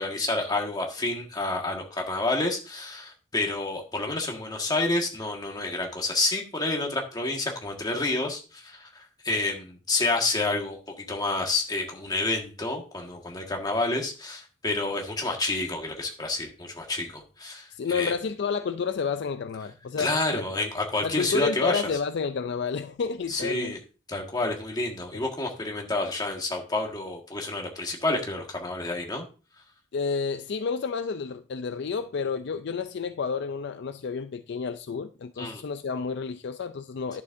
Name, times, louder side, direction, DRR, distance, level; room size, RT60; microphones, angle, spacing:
voice 1, 0.0-10.8 11.1-18.1 20.0-21.8 23.3-23.8 24.1-29.3 35.4-35.6, left 2 dB, 20° left, 1.6 m, -29 dB
voice 2, 17.7-20.4 21.0-23.8 25.1-25.2 29.9-37.2, left 5 dB, 60° left, 0.4 m, -30 dB
10.5 x 7.0 x 2.6 m
head